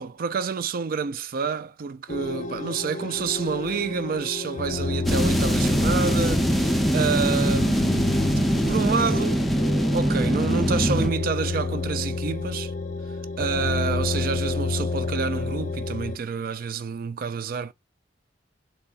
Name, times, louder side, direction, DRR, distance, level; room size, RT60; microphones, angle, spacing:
voice 1, 0.0-8.1 8.7-9.5 9.9-12.7 13.4-17.7, right 5 dB, 55° right, 0.4 m, -28 dB
sound 1, 2.1-16.2, left 3 dB, 45° left, 0.5 m, -29 dB
sound 2, 5.1-11.1, right 1 dB, ahead, 0.5 m, -23 dB
4.1 x 3.3 x 3.7 m
head